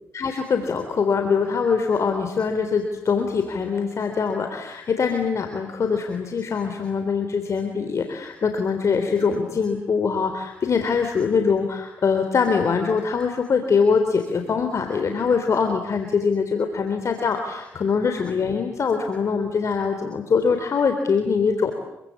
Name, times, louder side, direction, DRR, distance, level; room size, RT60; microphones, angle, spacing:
voice 1, 0.1-21.7, left 5 dB, 55° left, 6 dB, 3.7 m, -23 dB
27.0 x 24.0 x 8.5 m, 0.86 s
supercardioid pair, 60°, 6 cm